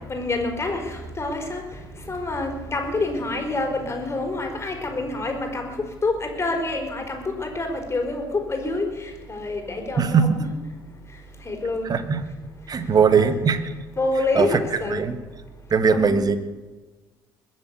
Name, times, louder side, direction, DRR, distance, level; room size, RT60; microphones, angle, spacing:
voice 1, 0.1-1.6 2.0-5.8 6.0-10.5 11.4-11.9 13.1-13.4 14.0-15.0 15.9-16.2, left 2 dB, 25° left, 3 dB, 4.7 m, -27 dB
voice 2, 10.0-10.4 11.8-12.2 12.7-13.7 14.3-14.5 14.9-15.2 15.7-16.4, right 6 dB, 35° right, 12 dB, 1.5 m, -20 dB
21.0 x 7.8 x 8.2 m, 1.2 s
hypercardioid pair, 55°, 11 cm